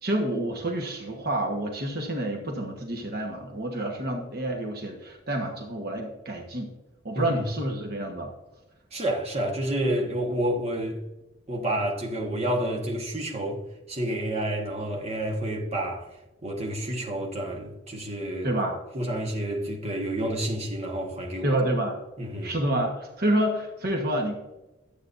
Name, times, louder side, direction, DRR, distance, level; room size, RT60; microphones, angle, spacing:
voice 1, 0.0-6.7 7.0-8.3 18.4-18.8 21.4-22.0 22.4-24.3, right 1 dB, 50° right, 1.2 m, -28 dB
voice 2, 8.9-11.0 11.5-13.6 13.9-16.1 16.4-18.6 18.9-21.6 22.2-22.5, right 1 dB, 30° right, 1.4 m, -29 dB
12.5 x 8.5 x 2.6 m
head